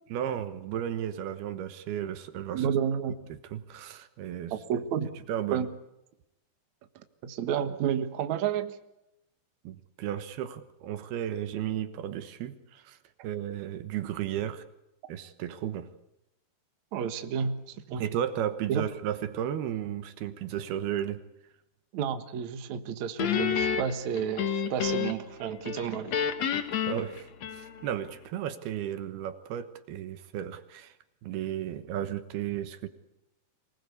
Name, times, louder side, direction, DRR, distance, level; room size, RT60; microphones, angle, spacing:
voice 1, 0.1-2.7 3.3-4.5 5.3-5.6 9.6-13.0 13.2-14.6 15.1-15.9 18.0-21.2 26.7-30.9 31.2-32.9, right 10 dB, 75° right, 11 dB, 3.1 m, -34 dB
voice 2, 2.5-3.2 4.5-5.1 5.5-5.7 7.2-8.8 16.9-18.0 18.7-18.8 21.9-26.2, right 8 dB, 55° right, 9 dB, 2.4 m, -31 dB
Guitar, 23.2-25.3 25.6-28.0, left 7 dB, 55° left, 2.3 m, -30 dB
25.5 x 20.0 x 8.4 m, 0.88 s
omnidirectional pair, 4.6 m